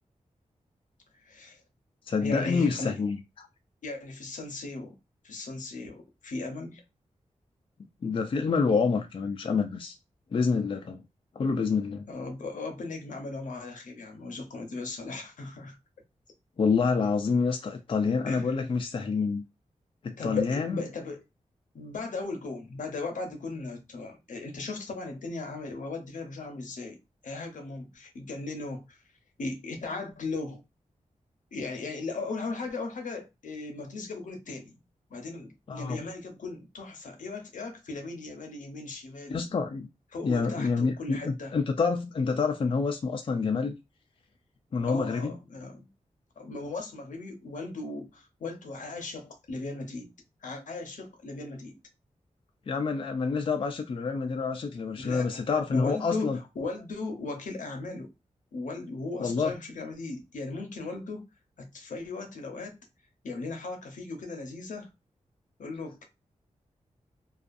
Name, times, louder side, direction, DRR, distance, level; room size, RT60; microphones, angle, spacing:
voice 1, 1.2-1.6 2.2-3.0 3.8-5.0 5.2-6.8 12.1-15.8 18.3-18.6 20.2-21.2 21.7-29.0 29.4-30.6 31.5-34.8 35.1-39.5 40.1-41.5 44.8-45.9 46.4-50.1 50.4-51.8 54.9-55.4 55.7-58.1 58.5-61.3 61.6-62.8 63.2-64.9 65.6-66.0, left 3 dB, 80° left, 0.7 m, -37 dB
voice 2, 2.1-3.5 8.0-9.9 10.3-11.0 11.4-12.1 16.6-19.4 20.0-20.8 35.7-36.0 39.3-39.9 40.2-43.8 44.7-45.4 52.7-56.4 59.2-59.5, left 4 dB, 40° left, 0.4 m, -27 dB
2.4 x 2.4 x 2.5 m
wide cardioid pair, 100°, 13 cm